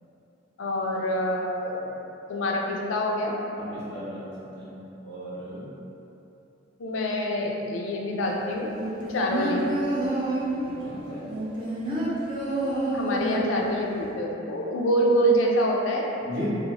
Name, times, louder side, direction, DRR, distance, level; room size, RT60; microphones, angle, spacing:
voice 1, 0.6-1.8 2.3-3.3 6.8-9.7 12.9-16.1, equal, 75° left, -1 dB, 0.4 m, -26 dB
voice 2, 3.6-4.7 5.0-5.6 10.6-11.2 16.2-16.5, equal, 70° right, -10 dB, 0.9 m, -37 dB
sound 1, 8.8-10.7 11.3-13.7 14.0-14.1, right 1 dB, 25° right, 0.4 m, -28 dB
2.7 x 2.0 x 2.8 m, 3.0 s
head